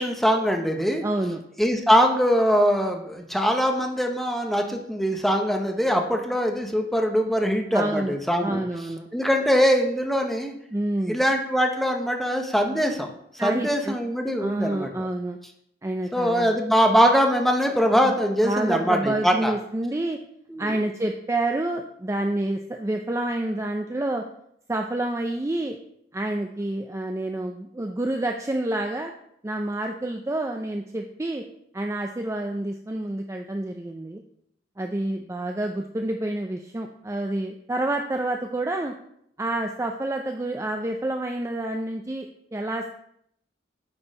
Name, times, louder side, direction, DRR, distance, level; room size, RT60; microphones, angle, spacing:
voice 1, 0.0-1.0 1.6-8.6 9.1-10.5 11.1-13.1 13.3-14.9 16.1-19.5 20.5-20.8, equal, ahead, 3 dB, 0.8 m, -22 dB
voice 2, 1.0-1.4 7.7-8.2 8.4-9.1 10.7-11.2 13.4-14.0 14.4-15.4 15.8-16.5 18.4-20.2 20.6-24.3 24.7-25.8 26.1-29.1 29.4-31.4 31.7-34.2 34.8-38.9 39.4-42.9, right 1 dB, 15° right, 3 dB, 0.4 m, -28 dB
8.8 x 4.5 x 5.2 m, 0.72 s
head